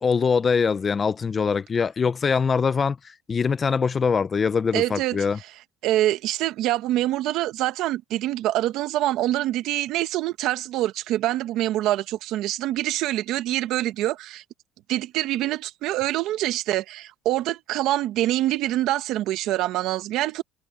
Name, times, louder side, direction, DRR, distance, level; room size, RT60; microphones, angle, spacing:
voice 1, 0.0-5.4, left 5 dB, 25° left, 0.5 m, -23 dB
voice 2, 4.7-5.2 5.8-14.4 14.9-20.4, right 14 dB, 65° right, 1.1 m, -25 dB
cardioid pair, 150°, 0 cm